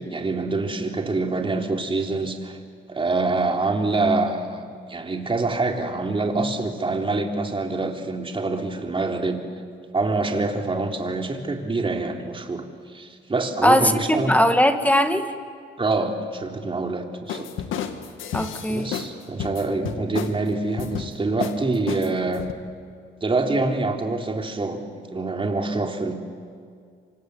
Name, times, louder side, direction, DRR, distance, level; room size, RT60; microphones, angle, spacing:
voice 1, 0.0-2.6 2.9-9.4 9.9-12.6 12.9-14.3 15.8-17.5 18.7-22.4 23.2-26.1, right 3 dB, 25° right, 3 dB, 3.6 m, -25 dB
voice 2, 13.6-15.3 18.3-18.9, equal, 5° left, 8 dB, 2.0 m, -19 dB
sound 1, 17.3-19.1 19.4-20.4 20.8-21.1 21.4-21.6 21.9-22.5, left 9 dB, 85° left, 1.9 m, -31 dB
27.0 x 26.5 x 8.0 m, 2.2 s
cardioid pair, 90°, 20 cm